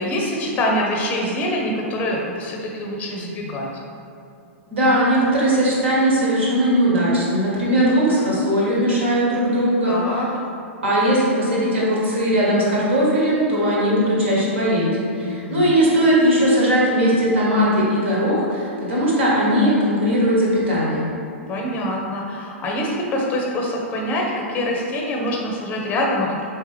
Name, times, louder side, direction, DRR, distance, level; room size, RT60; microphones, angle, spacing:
voice 1, 0.0-3.7 9.9-10.3 15.2-15.7 21.5-26.4, left 1 dB, 25° left, -1 dB, 0.6 m, -25 dB
voice 2, 4.7-10.0 10.8-21.1, equal, 65° right, -6 dB, 1.4 m, -19 dB
4.6 x 3.1 x 3.2 m, 2.5 s
figure-of-eight pair, 100°, 7 cm